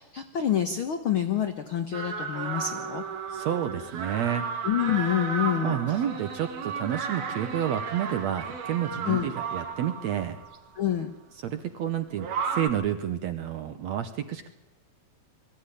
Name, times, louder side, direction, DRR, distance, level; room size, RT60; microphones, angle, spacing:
voice 1, 0.0-3.0 4.6-6.0 9.1-9.3 10.8-11.1, left 10 dB, 90° left, 7 dB, 1.1 m, -27 dB
sound 1, 1.9-10.6 12.2-12.7, right 6 dB, 90° right, 4.0 m, -34 dB
voice 2, 3.3-4.5 5.6-10.4 11.4-14.5, right 10 dB, 70° right, 9 dB, 1.7 m, -30 dB
21.5 x 15.0 x 9.9 m, 0.99 s
omnidirectional pair, 4.2 m